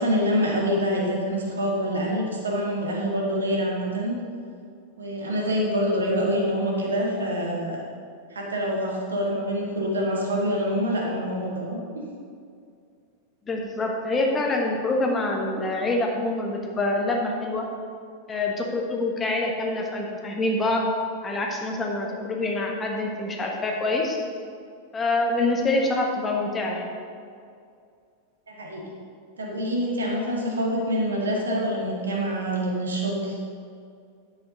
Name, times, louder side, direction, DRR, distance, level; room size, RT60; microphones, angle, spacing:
voice 1, 0.0-4.1 5.0-7.8 8.3-12.1 28.5-28.8 29.4-33.4, equal, 70° right, -2 dB, 2.0 m, -26 dB
voice 2, 13.5-17.6 18.3-20.8 21.2-24.2 24.9-26.9, left 2 dB, 20° left, 0 dB, 1.3 m, -26 dB
10.0 x 7.8 x 4.0 m, 2.3 s
figure-of-eight pair, 90°, 0 cm